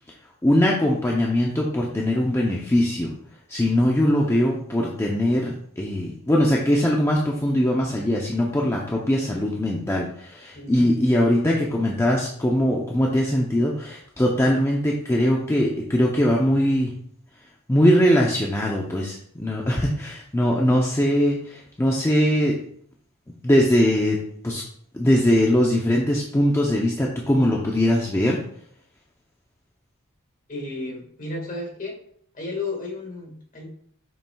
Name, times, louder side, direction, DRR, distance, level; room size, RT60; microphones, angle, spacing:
voice 1, 0.4-3.1 3.5-16.9 17.7-22.6 23.4-24.6 24.9-28.4, equal, 10° left, -2 dB, 0.6 m, -21 dB
voice 2, 10.5-10.9 30.5-32.0 32.3-33.7, left 2 dB, 35° left, 0 dB, 1.8 m, -33 dB
7.1 x 5.9 x 2.3 m, 0.63 s
head